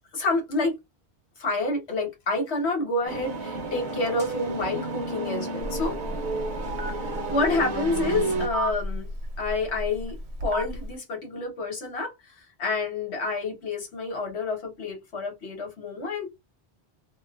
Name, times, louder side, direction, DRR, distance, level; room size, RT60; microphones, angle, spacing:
voice 1, 0.1-0.8 1.4-6.0 7.0-9.1 9.4-12.3 12.6-16.3, left 3 dB, 80° left, 1.5 m, -28 dB
sound 1, 3.1-8.5, right 3 dB, 55° right, 0.7 m, -31 dB
Telephone, 5.6-10.9, right 1 dB, 85° right, 1.0 m, -34 dB
3.0 x 2.0 x 2.3 m
omnidirectional pair, 1.1 m